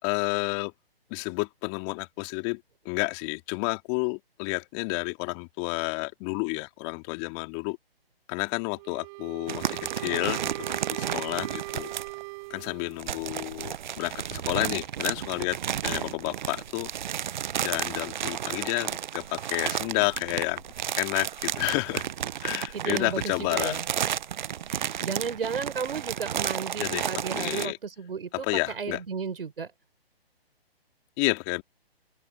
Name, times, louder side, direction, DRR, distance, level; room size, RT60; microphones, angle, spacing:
voice 1, 0.0-0.7 1.1-7.8 8.3-11.9 12.5-16.9 17.6-20.6 21.0-22.0 22.4-23.8 26.8-27.1 27.3-27.8 28.3-29.0 31.2-31.6, left 34 dB, 25° left, 2.6 m, -30 dB
Wind instrument woodwind instrument, 8.7-13.1, right 30 dB, 30° right, 4.9 m, -40 dB
sound 1, 9.5-12.2 12.9-27.7, right 9 dB, 50° right, 0.8 m, -32 dB
voice 2, 22.7-23.8 24.7-29.7, right 6 dB, 65° right, 5.6 m, -33 dB
open air
figure-of-eight pair, 135°, 31 cm